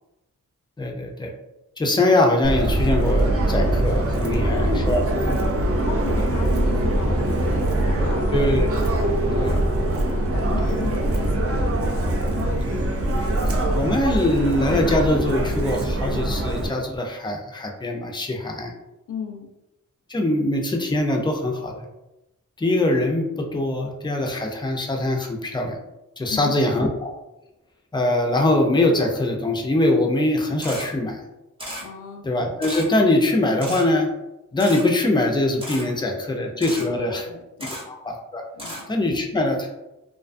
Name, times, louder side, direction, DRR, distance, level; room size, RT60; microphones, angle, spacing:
voice 1, 0.8-1.3 1.8-5.0 8.3-8.8 9.3-9.6 10.6-10.7 12.6-12.9 13.7-18.7 20.1-21.9 22.6-25.8 26.2-27.1 27.9-31.2 32.2-34.1 34.5-37.3 37.6-38.5 38.9-39.7, left 1 dB, 15° left, 2 dB, 0.3 m, -22 dB
Subway metro underground, 2.4-16.7, right 1 dB, 45° right, 0.4 m, -22 dB
voice 2, 4.4-8.3 8.9-9.8 10.1-11.8 19.1-19.5 26.3-26.5 31.8-32.3 36.8-37.7 38.5-38.8, left 5 dB, 70° left, 3 dB, 0.5 m, -34 dB
Camera, 30.6-30.8 31.6-31.8 32.6-32.8 33.6-33.8 34.6-34.8 35.6-35.8 36.6-36.8 37.6-37.8 38.6-38.8, equal, 15° right, 0.7 m, -34 dB
2.5 x 2.3 x 2.4 m, 0.95 s
wide cardioid pair, 115°, 32 cm